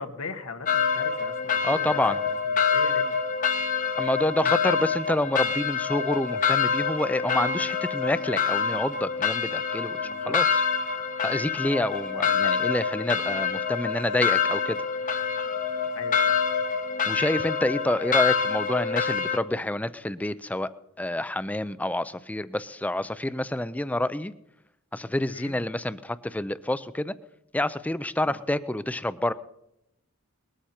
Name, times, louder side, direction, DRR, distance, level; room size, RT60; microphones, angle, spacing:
voice 1, 0.0-3.1 10.0-10.4 15.9-16.4 25.3-25.6 28.2-28.3, left 4 dB, 85° left, 6 dB, 1.4 m, -40 dB
sound 1, 0.7-19.4, left 6 dB, 40° left, 0.8 m, -26 dB
voice 2, 1.6-2.2 4.0-10.6 11.2-14.8 17.1-20.7 21.0-24.3 24.9-27.1 27.5-29.3, left 1 dB, 5° left, 15 dB, 0.4 m, -28 dB
20.0 x 13.0 x 4.4 m, 0.83 s
head